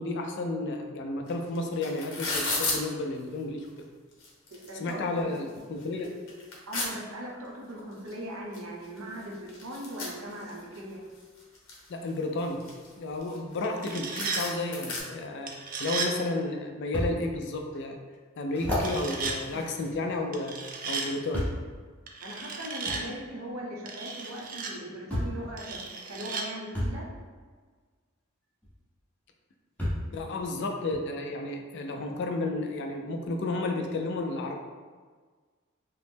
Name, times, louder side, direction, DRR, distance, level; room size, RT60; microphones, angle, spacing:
voice 1, 0.0-3.9 4.8-6.1 11.9-12.6 13.0-18.0 18.4-20.6 20.9-21.5 30.1-34.6, left 2 dB, 55° left, 3 dB, 0.4 m, -32 dB
sound 1, 1.3-1.4 1.5-2.8 3.6-3.7 4.1-4.9 5.3-5.4 5.8-6.9 8.1-8.2 8.5-8.6 8.8-10.8 11.2-11.9 12.4-13.6 13.9-14.0 14.2-15.0, left 2 dB, 75° left, 0.8 m, -33 dB
voice 2, 4.5-5.5 6.0-6.1 6.7-11.0 22.2-25.8 26.0-27.1, right 1 dB, 80° right, -2 dB, 0.7 m, -39 dB
sound 2, 13.6-14.5 15.5-16.1 18.8-19.4 20.3-21.1 22.1-23.0 23.9-24.7 25.6-26.5, right 4 dB, 40° right, 0.3 m, -35 dB
sound 3, 16.9-17.1 17.7-17.8 18.5-20.4 21.3-21.7 22.8-23.0 24.3-24.4 25.1-25.4 26.7-27.0 28.6-28.7 29.8-30.1 30.9-31.0, equal, 5° left, 0.6 m, -32 dB
3.0 x 2.0 x 3.4 m, 1.5 s
head